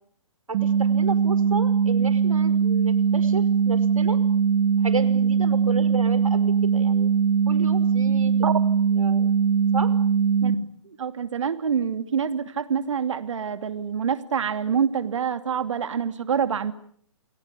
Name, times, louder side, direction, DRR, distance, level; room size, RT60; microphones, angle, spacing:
sound 1, 0.5-10.6, right 6 dB, 40° right, 3.8 m, -21 dB
voice 1, 0.5-4.2 4.8-7.1 7.5-8.3 9.0-9.3 9.7-9.9, right 3 dB, 90° right, 12 dB, 5.5 m, -33 dB
voice 2, 10.8-16.7, right 7 dB, 65° right, 10 dB, 2.6 m, -26 dB
30.0 x 22.0 x 8.4 m, 0.63 s
hypercardioid pair, 140°, 17 cm